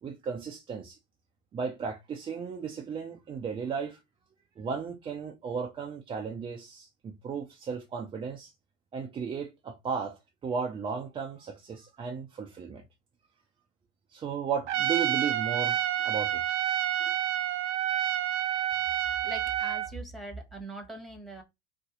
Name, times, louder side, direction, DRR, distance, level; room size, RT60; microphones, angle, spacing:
voice 1, 0.0-1.0 1.5-4.0 4.6-8.5 8.9-12.8 14.1-16.6, right 6 dB, 15° right, 0.3 m, -35 dB
Trumpet, 14.7-19.9, right 12 dB, 75° right, 0.6 m, -29 dB
voice 2, 19.2-21.4, right 1 dB, ahead, 1.0 m, -41 dB
2.6 x 2.6 x 3.7 m
figure-of-eight pair, 70°, 36 cm